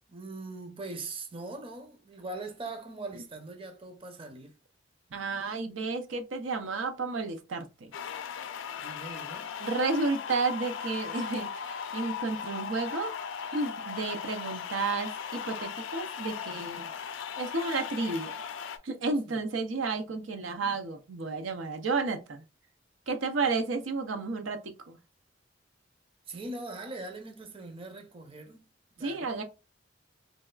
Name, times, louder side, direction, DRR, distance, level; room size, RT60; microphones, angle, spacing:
voice 1, 0.1-4.6 8.8-9.5 19.3-19.4 26.3-28.6 29.0-29.3, right 2 dB, 30° right, 0.6 m, -41 dB
voice 2, 5.1-7.9 9.6-13.1 13.5-16.9 17.4-18.3 18.8-22.4 23.1-25.0 29.0-29.4, right 3 dB, 85° right, 0.6 m, -32 dB
sound 1, 7.9-18.8, left 7 dB, 80° left, 0.4 m, -38 dB
4.0 x 2.3 x 2.2 m
head